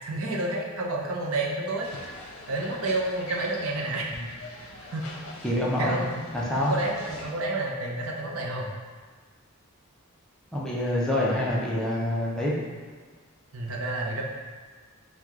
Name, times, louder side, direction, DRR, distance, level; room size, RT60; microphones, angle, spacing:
voice 1, 0.0-2.2 2.5-4.1 4.9-5.1 5.8-6.2 6.6-8.7 13.5-14.2, right 2 dB, 70° right, -1 dB, 0.6 m, -30 dB
sound 1, 1.8-7.3, left 2 dB, 75° left, 0.7 m, -43 dB
voice 2, 5.4-6.0 6.3-6.7 10.5-12.5, left 1 dB, 5° left, -6 dB, 0.5 m, -26 dB
4.5 x 2.3 x 3.6 m, 1.5 s
head